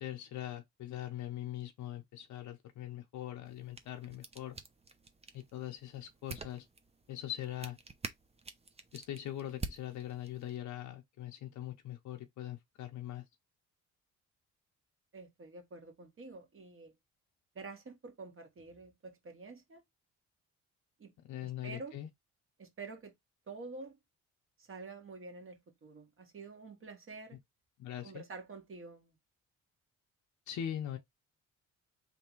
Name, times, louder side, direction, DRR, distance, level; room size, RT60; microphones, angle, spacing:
voice 1, 0.0-4.6 5.3-6.7 7.1-7.8 8.9-13.2 21.3-22.1 27.8-28.2 30.5-31.0, left 11 dB, 75° left, 0.8 m, -42 dB
sound 1, 3.5-10.6, right 4 dB, 20° right, 0.7 m, -48 dB
voice 2, 15.1-16.9 17.5-19.8 21.0-21.1 21.4-22.0 22.6-23.1 23.5-24.0 24.6-27.4 28.0-29.2, right 3 dB, 45° right, 1.8 m, -48 dB
3.5 x 2.9 x 4.5 m
cardioid pair, 90°, 30 cm